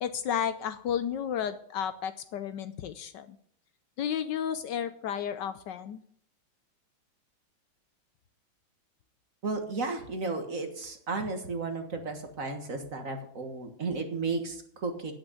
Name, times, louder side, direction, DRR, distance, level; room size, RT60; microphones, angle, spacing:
voice 1, 0.0-3.4 4.0-6.0, left 9 dB, 70° left, 12 dB, 1.2 m, -32 dB
voice 2, 9.4-15.1, right 3 dB, 45° right, 5 dB, 1.8 m, -33 dB
9.1 x 8.8 x 8.3 m, 0.65 s
omnidirectional pair, 2.1 m